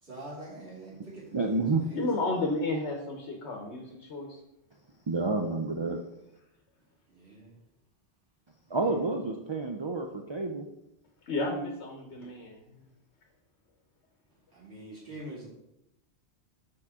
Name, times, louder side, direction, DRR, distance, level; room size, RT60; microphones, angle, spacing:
voice 1, 0.0-2.1 7.1-7.6 8.7-9.1 14.5-15.5, right 2 dB, 75° right, -7 dB, 2.6 m, -45 dB
voice 2, 1.3-1.8 5.1-6.0 8.7-10.7, right 3 dB, 45° right, 3 dB, 0.3 m, -29 dB
voice 3, 1.9-4.4 11.3-12.8, left 2 dB, 85° left, 2 dB, 1.2 m, -32 dB
7.3 x 4.7 x 3.5 m, 0.86 s
omnidirectional pair, 1.1 m